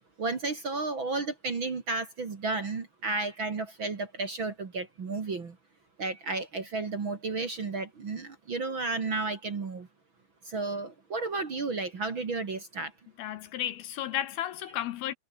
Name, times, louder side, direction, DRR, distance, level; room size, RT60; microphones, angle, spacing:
voice 1, 0.2-5.5 6.0-9.9 10.5-12.9 14.1-14.2, right 3 dB, 40° right, 2.1 m, -33 dB
voice 2, 13.2-15.1, left 12 dB, 75° left, 2.5 m, -33 dB
omnidirectional pair, 5.1 m